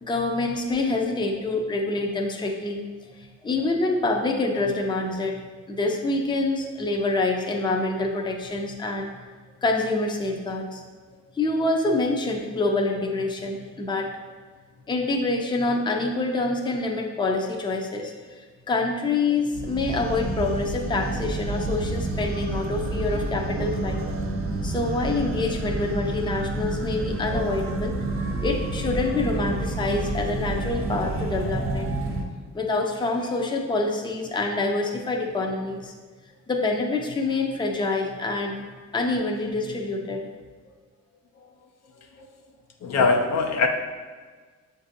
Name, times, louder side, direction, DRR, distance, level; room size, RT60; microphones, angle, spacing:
voice 1, 0.0-2.8 3.4-5.4 5.7-9.1 9.6-10.8 11.3-14.1 14.9-24.0 24.6-31.9 32.5-35.9 36.5-38.6 38.9-40.3, left 2 dB, 15° left, 2 dB, 0.5 m, -26 dB
sound 1, 19.5-32.2, right 2 dB, 45° right, 0.6 m, -29 dB
voice 2, 42.8-43.7, left 4 dB, 60° left, 4 dB, 0.5 m, -21 dB
7.1 x 2.6 x 2.6 m, 1.5 s
cardioid pair, 90°, 30 cm